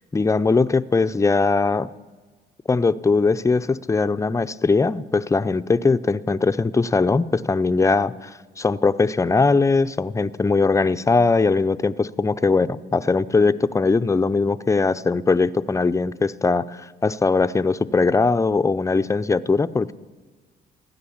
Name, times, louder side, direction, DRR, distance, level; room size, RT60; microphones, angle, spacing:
voice 1, 0.1-1.9 2.7-19.9, left 4 dB, 15° left, 13 dB, 0.4 m, -20 dB
15.5 x 10.0 x 7.1 m, 1.4 s
cardioid pair, 90°, 20 cm